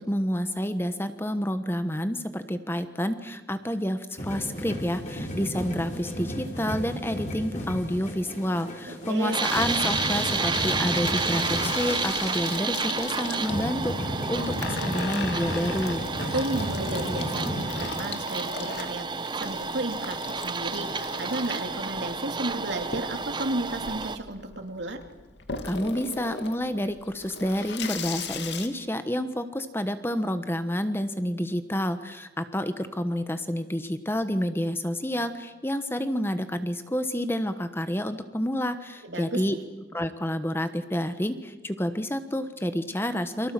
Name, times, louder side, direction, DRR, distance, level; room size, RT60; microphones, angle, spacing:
voice 1, 0.0-16.0 25.6-39.5 39.9-43.5, equal, 10° left, 9 dB, 1.2 m, -29 dB
sound 1, 4.2-17.9, equal, 40° left, 5.1 m, -34 dB
voice 2, 8.9-9.4 16.2-19.1 19.4-25.0 39.0-39.6, right 1 dB, 75° right, 5 dB, 2.9 m, -33 dB
sound 2, 9.3-24.2, right 4 dB, 25° right, 0.8 m, -31 dB
Water tap faucet / Sink (filling or washing), 9.4-28.7, left 5 dB, 70° left, 2.4 m, -38 dB
29.5 x 24.0 x 7.6 m, 1.2 s
head